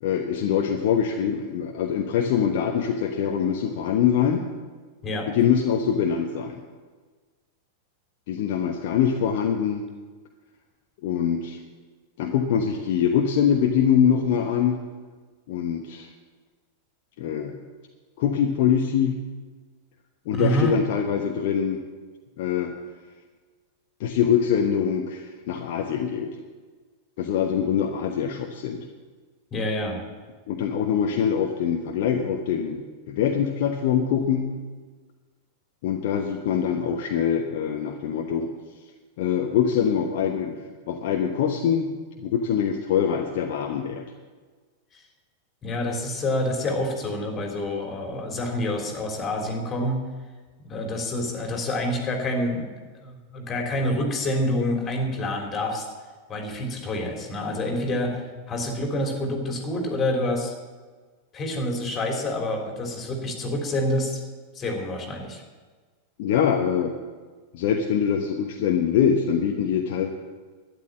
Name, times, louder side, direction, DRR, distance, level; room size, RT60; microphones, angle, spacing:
voice 1, 0.0-4.4 5.3-6.6 8.3-9.8 11.0-11.6 12.2-14.8 15.5-16.1 17.2-17.6 18.2-19.2 20.3-21.8 22.4-22.7 24.0-26.3 27.2-28.9 30.5-34.5 35.8-38.5 39.2-44.0 66.2-66.9 67.5-70.1, left 8 dB, 50° left, 2 dB, 1.1 m, -24 dB
voice 2, 20.3-20.7 29.5-30.0 44.9-45.0 45.6-50.0 50.6-52.7 53.0-55.8 56.3-60.5 61.3-64.2 64.5-65.4, left 1 dB, 25° left, 2 dB, 3.4 m, -27 dB
12.5 x 10.5 x 7.5 m, 1.4 s
figure-of-eight pair, 90°, 0 cm